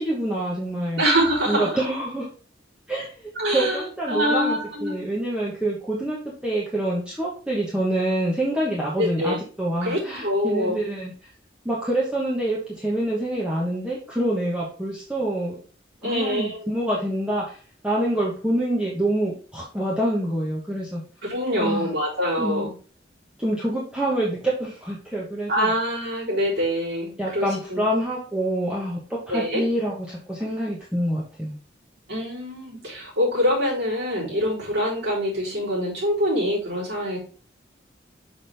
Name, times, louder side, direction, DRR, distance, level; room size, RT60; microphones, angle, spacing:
voice 1, 0.0-1.0 1.5-2.3 2.9-11.1 11.6-15.6 16.0-17.6 17.8-21.0 21.6-21.9 22.4-22.7 23.4-25.7 27.2-31.6, right 1 dB, 5° right, -6 dB, 1.1 m, -26 dB
voice 2, 1.0-1.7 3.4-5.0 9.0-9.4 9.8-10.8 16.0-16.7 21.2-22.7 25.5-27.8 29.3-29.6 32.1-37.2, equal, 65° right, -6 dB, 3.7 m, -25 dB
6.1 x 6.0 x 3.4 m, 0.40 s
head